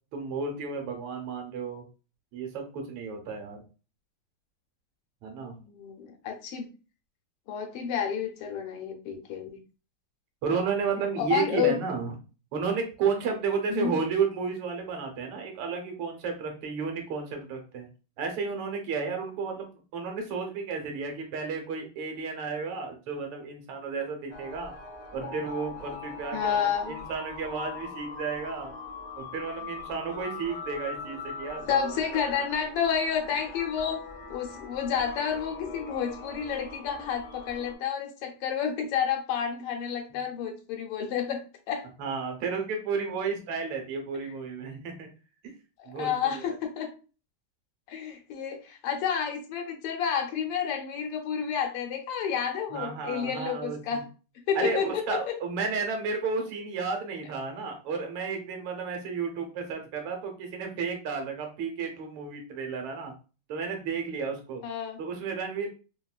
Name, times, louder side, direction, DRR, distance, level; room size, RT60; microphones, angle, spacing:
voice 1, 0.1-1.8 2.3-3.6 5.2-5.5 10.4-12.2 12.5-17.9 18.2-19.7 19.9-24.7 25.1-28.7 29.2-32.0 42.0-45.1 45.9-46.4 52.7-54.0 54.5-63.1 63.5-64.6 65.0-65.7, right 5 dB, 85° right, 3 dB, 1.7 m, -32 dB
voice 2, 5.6-6.7 7.5-9.6 11.2-11.8 13.7-14.0 26.3-27.1 31.7-34.0 34.3-41.9 45.8-46.9 47.9-54.0 54.5-55.4 64.6-65.0, left 8 dB, 85° left, 4 dB, 1.6 m, -30 dB
sound 1, 24.3-37.7, left 4 dB, 55° left, 0.4 m, -42 dB
4.0 x 2.1 x 2.3 m, 0.34 s
omnidirectional pair, 2.4 m